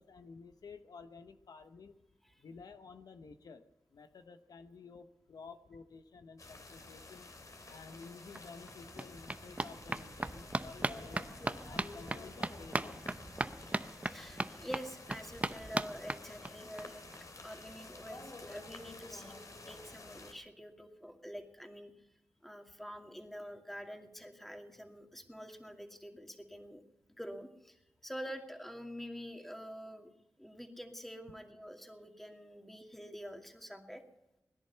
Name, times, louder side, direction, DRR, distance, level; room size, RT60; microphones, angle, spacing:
voice 1, 0.0-2.0 2.4-3.6 3.9-7.3 7.7-11.2 11.6-13.0, left 4 dB, 85° left, 9 dB, 0.9 m, -52 dB
sound 1, 6.4-20.3, left 3 dB, 60° left, 2.7 m, -51 dB
sound 2, 8.0-8.1 8.3-16.8 17.1-17.2 17.5-17.6 17.8-17.9, right 2 dB, 20° right, 0.7 m, -39 dB
voice 2, 14.1-17.1 17.3-19.4 19.7-21.9 22.4-26.8 27.2-30.1 30.4-34.0, equal, 5° left, 4 dB, 2.4 m, -47 dB
21.0 x 10.5 x 5.7 m, 0.93 s
cardioid pair, 65°, 6 cm